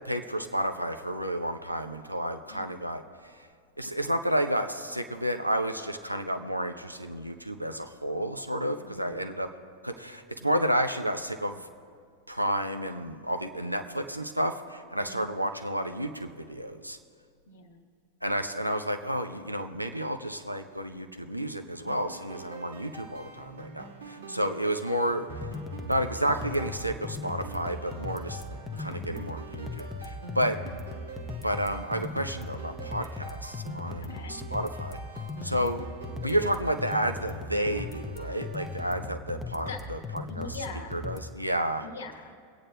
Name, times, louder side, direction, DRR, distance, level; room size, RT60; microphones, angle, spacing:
voice 1, 0.0-3.5 3.8-9.5 9.8-11.7 12.3-17.0 18.2-25.3 25.9-28.4 28.8-30.6 31.4-35.0 35.4-35.8 36.2-40.0 40.4-40.6 40.9-41.9, equal, 90° right, 6 dB, 0.5 m, -31 dB
voice 2, 8.8-9.3 14.9-15.4 17.5-17.8 24.2-24.6 28.8-29.2 30.3-30.8 34.0-34.4 39.7-39.8 40.2-41.0 41.8-42.4, left 3 dB, 70° left, 4 dB, 1.1 m, -43 dB
sound 1, 21.8-39.1, right 3 dB, 70° right, 1.4 m, -46 dB
sound 2, 25.3-41.3, left 2 dB, 10° left, 0.7 m, -38 dB
24.0 x 8.7 x 2.2 m, 2.2 s
figure-of-eight pair, 90°, 0 cm